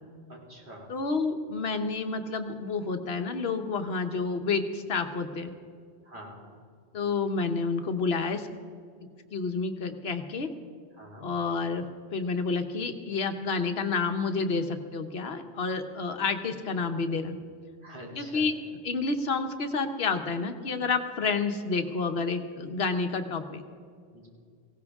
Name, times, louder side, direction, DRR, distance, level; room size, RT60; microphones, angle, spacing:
voice 1, 0.3-0.9 6.0-6.4 10.9-11.3 17.8-18.4 24.1-24.3, equal, 45° right, -3 dB, 3.2 m, -45 dB
voice 2, 0.9-5.5 6.9-8.5 9.3-10.5 11.2-11.8 12.1-17.4 18.1-18.5 18.8-23.6, left 4 dB, 60° left, 7 dB, 1.3 m, -29 dB
18.5 x 16.5 x 3.6 m, 2.2 s
omnidirectional pair, 1.2 m